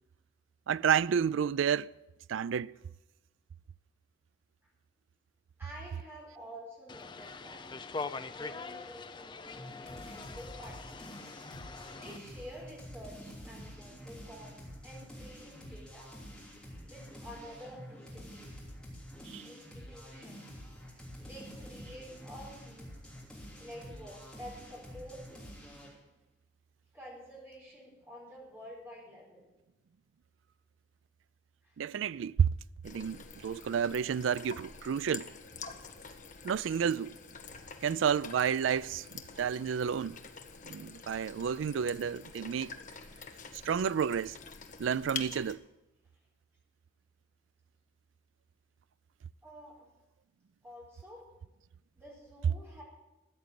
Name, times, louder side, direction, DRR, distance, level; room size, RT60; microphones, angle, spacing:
voice 1, 0.7-1.9 2.3-2.7 19.3-19.5 31.8-32.5 32.8-35.3 36.4-37.1 37.8-40.2 40.6-42.7 43.6-44.4 44.8-45.6, right 7 dB, 75° right, 0.3 m, -30 dB
voice 2, 5.6-7.6 8.3-11.3 11.9-16.1 16.5-18.5 19.4-20.6 20.9-22.9 23.6-25.2 26.9-29.4 31.6-31.8 37.5-37.8 49.4-49.9 50.6-51.2 51.9-52.8, equal, 10° right, 4.6 m, -50 dB
sound 1, 6.9-12.2, left 4 dB, 25° left, 0.4 m, -43 dB
sound 2, 9.5-26.0, equal, 5° left, 3.1 m, -48 dB
sound 3, 32.8-45.5, left 5 dB, 40° left, 0.9 m, -47 dB
13.5 x 8.3 x 7.6 m
head